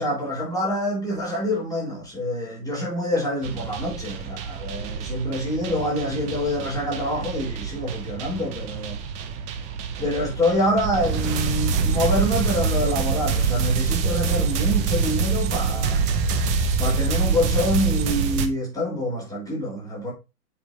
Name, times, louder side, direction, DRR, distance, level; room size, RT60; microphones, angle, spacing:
voice 1, 0.0-9.0 10.0-16.0 16.8-20.1, left 1 dB, 5° left, 3.9 m, -26 dB
sound 1, 3.4-18.5, right 5 dB, 15° right, 0.5 m, -26 dB
8.6 x 5.4 x 2.7 m
figure-of-eight pair, 115°, 49 cm